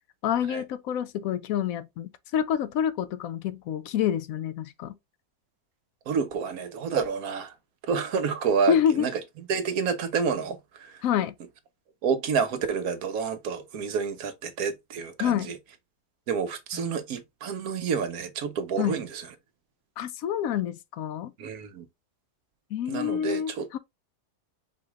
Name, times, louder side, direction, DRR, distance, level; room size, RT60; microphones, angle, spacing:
voice 1, 0.2-4.9 8.7-9.1 11.0-11.3 15.2-15.5 16.8-16.9 18.8-18.9 20.0-21.3 22.7-23.8, left 9 dB, 75° left, 1.0 m, -27 dB
voice 2, 6.1-7.5 7.8-9.2 9.5-11.0 12.0-15.6 16.3-19.3 21.4-21.9 22.9-23.7, right 6 dB, 80° right, 1.3 m, -29 dB
4.8 x 3.0 x 3.4 m
omnidirectional pair, 1.5 m